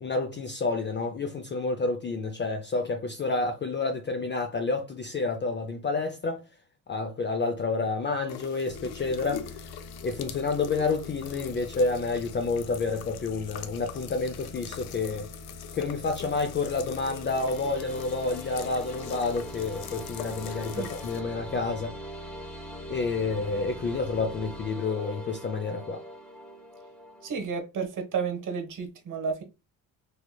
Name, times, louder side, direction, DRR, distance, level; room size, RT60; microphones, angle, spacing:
voice 1, 0.0-6.4 6.9-9.5 10.0-15.3 15.7-22.0 22.9-26.0, left 3 dB, 30° left, 0.5 m, -29 dB
sound 1, 8.3-21.2, left 10 dB, 80° left, 0.5 m, -43 dB
sound 2, 8.6-24.7, left 2 dB, 65° left, 1.1 m, -45 dB
sound 3, 17.2-27.3, right 1 dB, ahead, 0.8 m, -43 dB
voice 2, 27.2-29.4, right 6 dB, 55° right, 1.1 m, -31 dB
3.3 x 2.9 x 2.2 m
supercardioid pair, 70°, 38 cm